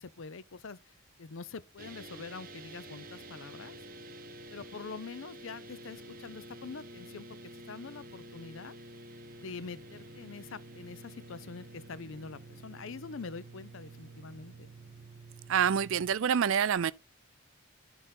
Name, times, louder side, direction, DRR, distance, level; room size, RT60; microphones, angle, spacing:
voice 1, 0.0-3.8 4.5-7.3 7.5-8.8 9.4-14.7, left 4 dB, 60° left, 0.5 m, -45 dB
sound 1, 1.8-16.1, right 2 dB, 40° right, 0.8 m, -49 dB
voice 2, 15.5-16.9, right 8 dB, 65° right, 0.4 m, -26 dB
11.0 x 4.0 x 4.0 m
head